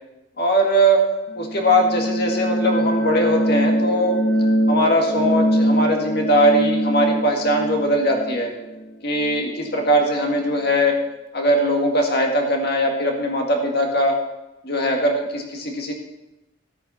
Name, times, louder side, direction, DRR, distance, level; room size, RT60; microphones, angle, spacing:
voice 1, 0.4-1.0 1.4-4.2 4.7-8.5 9.0-11.0 11.3-14.2 14.6-15.9, equal, 55° left, 1 dB, 2.0 m, -20 dB
sound 1, 1.3-9.8, equal, 80° left, 1.6 m, -23 dB
14.0 x 9.2 x 4.3 m, 0.96 s
head